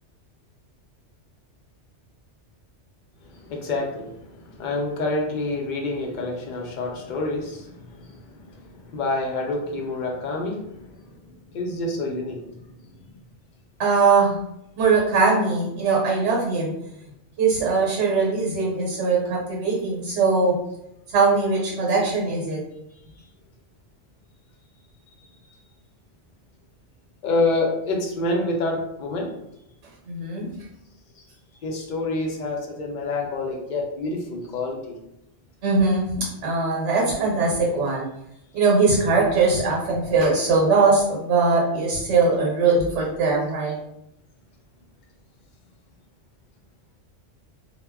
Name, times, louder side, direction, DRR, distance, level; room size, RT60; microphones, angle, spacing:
voice 1, 3.2-11.2 11.5-12.4 25.1-25.2 27.2-29.3 31.6-35.0, left 2 dB, 60° left, 0 dB, 0.5 m, -28 dB
voice 2, 13.8-14.4 14.8-16.7 17.4-20.5 21.1-22.6 30.1-30.5 35.6-38.1 38.5-43.8, right 4 dB, 75° right, -2 dB, 1.0 m, -21 dB
2.2 x 2.0 x 3.4 m, 0.83 s
omnidirectional pair, 1.2 m